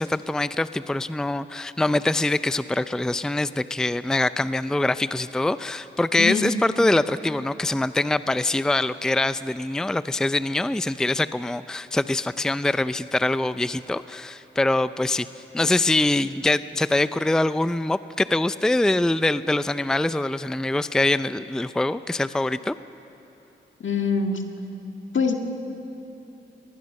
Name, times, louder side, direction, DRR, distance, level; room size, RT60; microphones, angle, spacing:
voice 1, 0.0-15.3 15.5-22.7, left 2 dB, 5° left, 14 dB, 0.4 m, -24 dB
voice 2, 6.2-6.5 23.8-24.4 25.1-25.3, left 5 dB, 75° left, 4 dB, 1.8 m, -23 dB
22.5 x 19.5 x 6.5 m, 2.9 s
cardioid pair, 55°, 20 cm